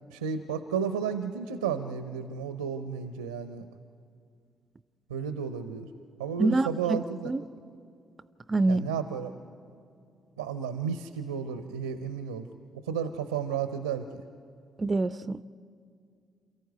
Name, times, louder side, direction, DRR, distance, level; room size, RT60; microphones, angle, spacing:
voice 1, 0.1-3.6 5.1-5.9 6.2-7.3 8.7-9.3 10.4-12.5 12.7-14.0, right 7 dB, 85° right, 11 dB, 0.7 m, -32 dB
voice 2, 6.4-7.0 7.2-7.4 8.5-8.8 14.8-15.4, right 2 dB, 30° right, 16 dB, 0.5 m, -25 dB
28.0 x 14.0 x 9.3 m, 2.3 s
figure-of-eight pair, 40°, 0 cm